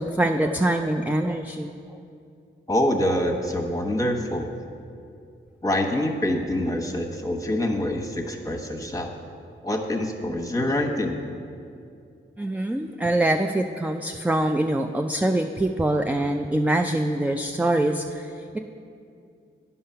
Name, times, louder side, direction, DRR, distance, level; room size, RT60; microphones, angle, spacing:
voice 1, 0.0-1.7 12.4-18.6, right 1 dB, 5° right, 5 dB, 0.3 m, -24 dB
voice 2, 2.7-4.5 5.6-9.1 9.6-11.2, left 1 dB, 15° left, 2 dB, 1.1 m, -25 dB
9.4 x 5.6 x 5.6 m, 2.4 s
cardioid pair, 60°, 21 cm